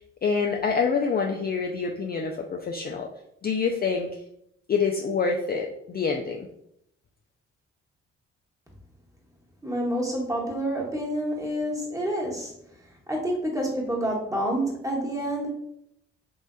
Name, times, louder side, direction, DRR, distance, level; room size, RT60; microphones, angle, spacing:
voice 1, 0.2-3.1 3.4-4.1 4.7-6.5, left 5 dB, 30° left, 1 dB, 0.4 m, -26 dB
voice 2, 9.6-12.5 13.1-15.5, right 1 dB, 10° right, -2 dB, 1.2 m, -28 dB
3.1 x 2.6 x 2.2 m, 0.75 s
hypercardioid pair, 45°, 31 cm